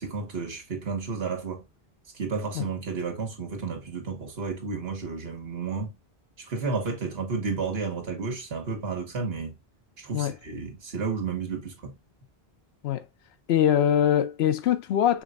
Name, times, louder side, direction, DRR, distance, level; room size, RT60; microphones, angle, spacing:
voice 1, 0.0-1.6 2.1-5.9 6.4-9.6 10.0-12.0, right 4 dB, 75° right, 1.4 m, -32 dB
voice 2, 13.5-15.2, left 10 dB, 80° left, 0.8 m, -23 dB
5.1 x 3.1 x 2.4 m
omnidirectional pair, 1.1 m